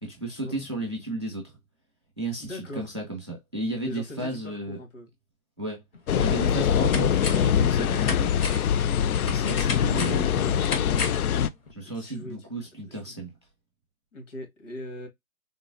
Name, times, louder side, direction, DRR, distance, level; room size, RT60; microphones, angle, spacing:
voice 1, 0.0-1.5 2.2-4.8 5.6-5.8 6.2-8.4 9.2-11.0 11.7-13.3, right 2 dB, 20° right, 0.4 m, -34 dB
voice 2, 2.4-2.9 3.8-5.1 11.9-12.5 12.9-13.2 14.1-15.1, left 1 dB, 60° left, 1.6 m, -40 dB
sound 1, 5.9-6.0 6.5-7.6 7.9-11.3 11.7-11.8, left 4 dB, 40° left, 0.8 m, -34 dB
sound 2, 6.1-11.5, left 8 dB, 85° left, 0.5 m, -23 dB
3.8 x 2.0 x 2.4 m
hypercardioid pair, 160°, 43 cm